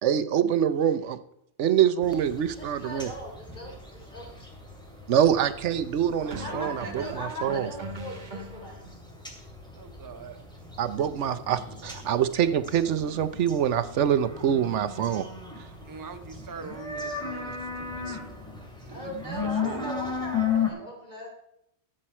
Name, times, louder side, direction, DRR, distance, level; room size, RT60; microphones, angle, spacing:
voice 1, 0.0-1.2 1.6-3.1 5.1-7.7 10.8-15.3 18.1-18.2, right 9 dB, 80° right, 13 dB, 1.0 m, -25 dB
sound 1, 2.0-20.7, left 6 dB, 5° left, 2.4 m, -36 dB
voice 2, 2.5-4.2 6.4-8.8 18.9-21.3, equal, 40° left, -1 dB, 3.7 m, -39 dB
sound 2, 3.6-3.9 6.3-9.0, right 2 dB, 40° right, 1.7 m, -41 dB
voice 3, 6.2-7.2 9.7-10.4 15.8-18.2 18.9-19.9, right 5 dB, 20° right, 8 dB, 0.6 m, -43 dB
13.0 x 7.6 x 4.3 m, 0.76 s
omnidirectional pair, 1.2 m